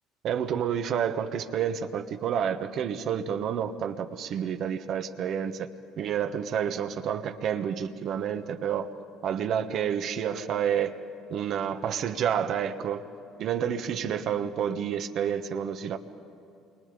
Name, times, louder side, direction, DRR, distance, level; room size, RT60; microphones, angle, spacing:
voice 1, 0.2-5.7 6.0-8.9 9.2-10.9 11.3-13.0 13.4-16.0, right 8 dB, 60° right, 6 dB, 1.4 m, -29 dB
28.5 x 24.0 x 5.3 m, 2.8 s
supercardioid pair, 80°, 0 cm